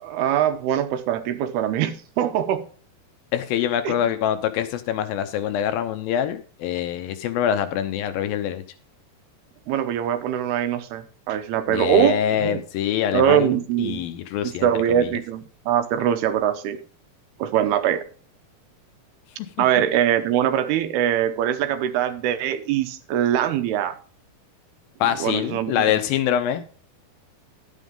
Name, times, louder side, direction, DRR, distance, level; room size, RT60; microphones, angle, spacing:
voice 1, 0.0-2.6 3.8-4.2 9.7-12.6 13.1-14.0 14.4-16.8 17.4-18.0 19.6-24.0 25.2-25.8, right 10 dB, 85° right, 10 dB, 2.8 m, -22 dB
voice 2, 3.3-8.6 11.7-15.1 25.0-26.6, left 10 dB, 75° left, 10 dB, 2.4 m, -25 dB
11.0 x 9.2 x 3.7 m, 0.41 s
omnidirectional pair, 4.4 m